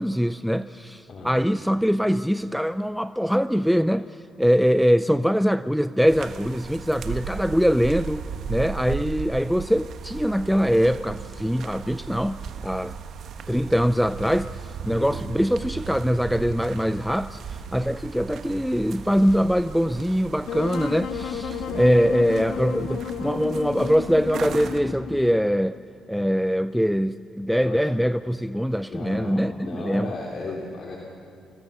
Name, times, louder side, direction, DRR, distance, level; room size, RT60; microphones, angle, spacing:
voice 1, 0.0-4.1 4.4-12.9 13.5-17.4 17.7-25.8 26.1-30.1, equal, ahead, 13 dB, 0.4 m, -23 dB
voice 2, 1.1-1.5 15.0-15.3 21.7-21.8 27.6-27.9 28.9-31.0, left 2 dB, 55° left, -2 dB, 3.2 m, -35 dB
sound 1, 6.1-24.8, right 6 dB, 65° right, 1.4 m, -37 dB
Wind instrument woodwind instrument, 20.5-25.6, left 8 dB, 80° left, 1.4 m, -32 dB
24.5 x 20.5 x 6.8 m, 2.6 s
cardioid pair, 90°, 0 cm